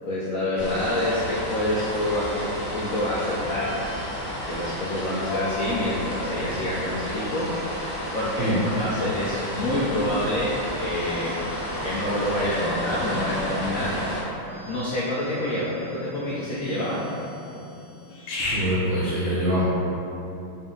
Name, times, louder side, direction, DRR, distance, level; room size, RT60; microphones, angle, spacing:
voice 1, 0.0-3.8 4.5-7.5 8.1-11.4 11.8-13.9 14.6-17.0, left 1 dB, 90° left, -7 dB, 0.7 m, -27 dB
Rain with bird and distant noise ambient, 0.6-14.2, equal, 40° left, 0.9 m, -32 dB
sound 1, 2.0-18.7, left 1 dB, 75° left, 1.5 m, -39 dB
voice 2, 18.4-19.6, equal, 85° right, -9 dB, 0.6 m, -24 dB
4.0 x 2.6 x 3.7 m, 2.9 s
omnidirectional pair, 2.1 m